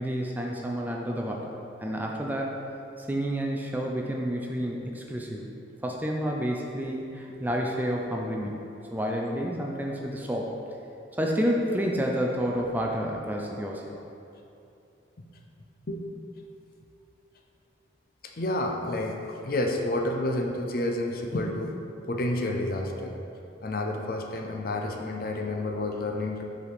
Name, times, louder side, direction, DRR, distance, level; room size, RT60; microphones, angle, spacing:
voice 1, 0.0-1.4 1.8-2.5 3.0-5.5 5.8-8.6 8.9-10.5 11.2-13.8, equal, 10° right, -1 dB, 0.4 m, -29 dB
voice 2, 18.4-21.7 22.1-23.2 23.6-26.4, left 1 dB, 50° left, 2 dB, 0.5 m, -29 dB
5.3 x 4.1 x 5.1 m, 2.7 s
head